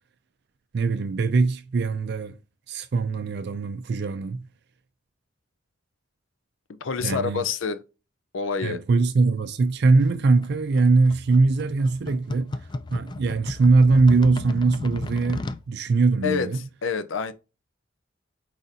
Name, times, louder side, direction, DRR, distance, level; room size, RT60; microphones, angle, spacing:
voice 1, 0.7-2.4 2.7-4.5 7.0-7.4 8.6-16.6, right 3 dB, 55° right, 0.4 m, -21 dB
voice 2, 6.8-7.8 8.3-8.8 16.2-16.5 16.8-17.3, left 6 dB, 80° left, 0.5 m, -27 dB
sound 1, 10.0-15.6, left 2 dB, 25° left, 0.3 m, -34 dB
4.8 x 4.0 x 2.6 m
head